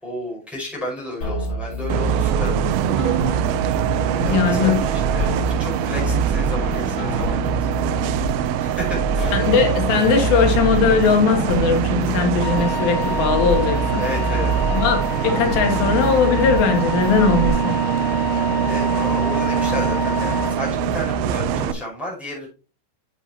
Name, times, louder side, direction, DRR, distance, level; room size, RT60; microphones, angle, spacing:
voice 1, 0.0-2.7 3.9-5.3 5.6-7.7 8.6-9.4 14.0-14.7 18.7-22.5, left 1 dB, ahead, 4.7 m, -32 dB
sound 1, 1.2-17.5, right 1 dB, 40° left, 5.0 m, -27 dB
Bus, 1.9-21.7, right 9 dB, 80° right, 2.3 m, -23 dB
voice 2, 4.2-4.8 9.3-14.0 14.7-17.7, left 5 dB, 85° left, 3.8 m, -19 dB
Wind instrument woodwind instrument, 12.4-20.6, left 4 dB, 70° left, 1.7 m, -29 dB
10.5 x 7.2 x 2.9 m
omnidirectional pair, 4.9 m